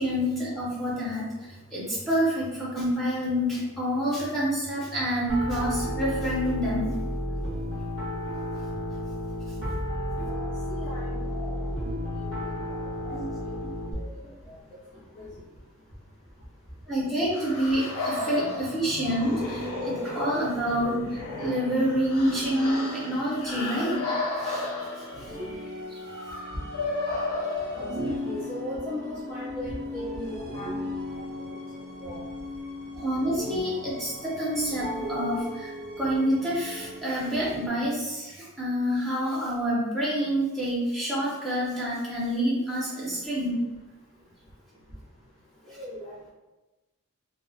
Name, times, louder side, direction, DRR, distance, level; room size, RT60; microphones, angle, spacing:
voice 1, 0.0-6.9 11.3-11.4 11.8-11.9 13.0-13.3 13.6-14.1 16.9-24.0 24.4-24.6 25.9-26.0 33.0-43.6, equal, ahead, -8 dB, 0.6 m, -28 dB
Piano, 5.3-13.9, equal, 55° left, 1.1 m, -32 dB
voice 2, 10.2-11.7 12.2-12.9 13.4-13.5 14.5-14.6 14.9-15.3 26.5-26.6 27.7-30.9 31.4-31.6 32.0-32.2 45.7-46.1, left 1 dB, 25° left, -11 dB, 0.8 m, -38 dB
sound 1, 17.3-28.4, left 2 dB, 75° left, 0.6 m, -34 dB
sound 2, 19.0-37.7, left 1 dB, 45° right, 0.4 m, -38 dB
2.5 x 2.1 x 2.7 m, 1.1 s
head